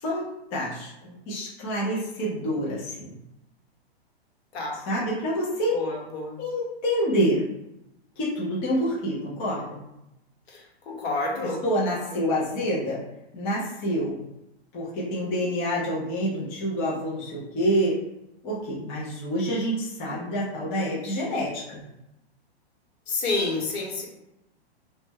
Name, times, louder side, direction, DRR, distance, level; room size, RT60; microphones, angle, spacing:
voice 1, 0.0-3.1 4.9-5.8 6.4-7.4 8.2-9.8 11.4-13.0 13.3-14.2 14.7-18.0 18.4-21.8, equal, 15° left, -6 dB, 0.3 m, -27 dB
voice 2, 5.7-6.4 10.5-11.6 12.0-12.2 23.1-24.1, left 3 dB, 70° left, -1 dB, 0.9 m, -29 dB
2.1 x 2.0 x 3.3 m, 0.90 s
hypercardioid pair, 145°, 32 cm